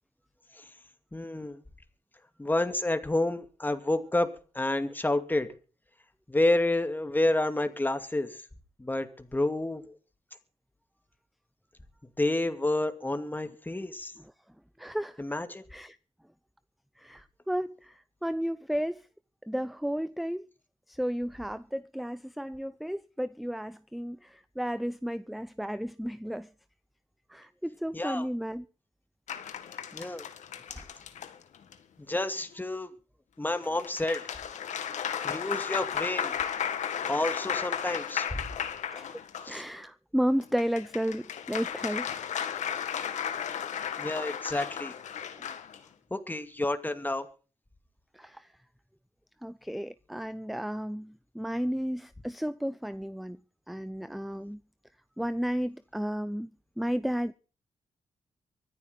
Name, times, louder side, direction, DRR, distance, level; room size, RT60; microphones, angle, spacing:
voice 1, 1.1-1.6 2.4-5.5 6.3-8.3 8.8-9.9 12.2-14.1 15.2-15.6 27.9-28.3 29.9-30.3 30.7-30.8 32.1-32.9 33.4-34.2 35.2-36.3 37.1-38.3 39.4-39.6 44.0-44.9 46.1-47.3, left 2 dB, 15° left, 2.4 m, -29 dB
voice 2, 14.8-15.2 15.7-16.0 17.0-19.1 19.5-20.4 20.9-26.5 27.3-28.7 38.9-39.2 39.5-42.1 48.1-48.5 49.4-53.4 53.7-54.6 55.2-56.5 56.8-57.3, equal, ahead, 0.6 m, -33 dB
sound 1, 29.3-31.7 33.6-39.6 40.4-45.8, left 8 dB, 80° left, 1.7 m, -34 dB
24.5 x 9.5 x 4.0 m
cardioid pair, 70°, 12 cm